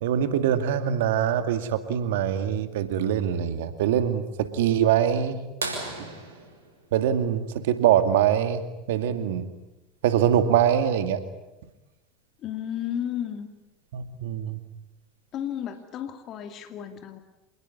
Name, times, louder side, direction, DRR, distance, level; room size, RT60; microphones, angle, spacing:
voice 1, 0.0-5.4 6.9-9.5 10.0-11.2 13.9-14.6, right 9 dB, 75° right, 10 dB, 2.3 m, -23 dB
sound 1, 5.6-8.1 10.0-10.1 12.3-12.4 14.1-14.4 15.2-15.3, right 3 dB, 90° right, 5.8 m, -36 dB
voice 2, 12.4-13.5 15.3-17.2, left 10 dB, 50° left, 7 dB, 2.5 m, -33 dB
27.5 x 20.5 x 9.9 m, 1.0 s
hypercardioid pair, 75°, 0 cm